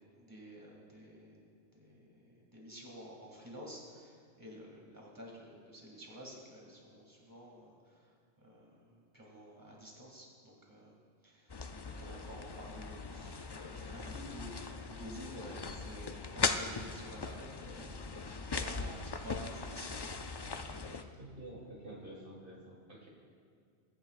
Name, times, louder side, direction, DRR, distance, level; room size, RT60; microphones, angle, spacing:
voice 1, 0.2-1.4 1.7-10.9 11.2-11.6 12.0-15.6 15.9-18.0 18.3-19.9, equal, 15° right, -3 dB, 2.4 m, -51 dB
sound 1, 11.5-21.0, left 4 dB, 40° left, 0.3 m, -39 dB
voice 2, 18.5-18.8 21.2-23.1, right 1 dB, 50° right, -3 dB, 2.2 m, -49 dB
22.5 x 10.5 x 2.5 m, 2.3 s
omnidirectional pair, 1.2 m